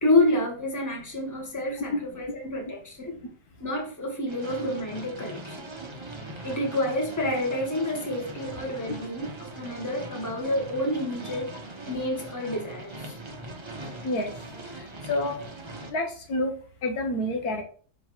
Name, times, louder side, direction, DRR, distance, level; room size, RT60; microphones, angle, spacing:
voice 1, 0.0-3.2 3.6-5.7 6.4-11.5 11.9-13.2, left 1 dB, 10° left, 1.4 m, -28 dB
sound 1, 4.3-15.9, right 2 dB, 20° right, 0.9 m, -40 dB
voice 2, 15.1-15.4 15.9-16.5 16.8-17.6, left 1 dB, 75° left, 1.6 m, -28 dB
5.5 x 3.7 x 4.6 m
omnidirectional pair, 1.6 m